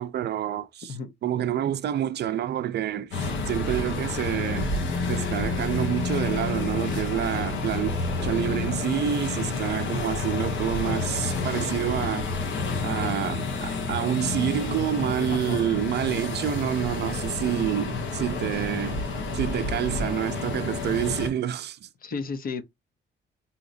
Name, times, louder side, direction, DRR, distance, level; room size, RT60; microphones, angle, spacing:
voice 1, 0.0-1.0 1.2-4.7 5.1-12.3 12.8-19.0 19.3-21.9, right 10 dB, 60° right, 0.4 m, -28 dB
sound 1, 3.1-21.3, left 3 dB, 75° left, 1.1 m, -29 dB
voice 2, 22.0-22.6, left 5 dB, 45° left, 0.7 m, -33 dB
3.7 x 2.8 x 2.5 m
cardioid pair, 90°, 20 cm